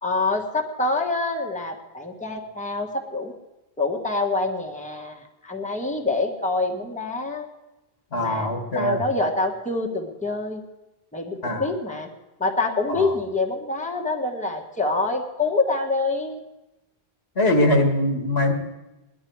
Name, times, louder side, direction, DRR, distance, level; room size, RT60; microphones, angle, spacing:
voice 1, 0.0-3.3 3.8-7.5 8.2-8.5 8.7-10.6 11.1-12.1 12.4-16.4, left 3 dB, 5° left, 0 dB, 1.5 m, -26 dB
voice 2, 8.1-9.0 11.4-11.7 12.9-13.1 17.4-18.5, left 1 dB, 85° left, 3 dB, 2.2 m, -22 dB
20.0 x 11.0 x 4.7 m, 1.0 s
omnidirectional pair, 1.0 m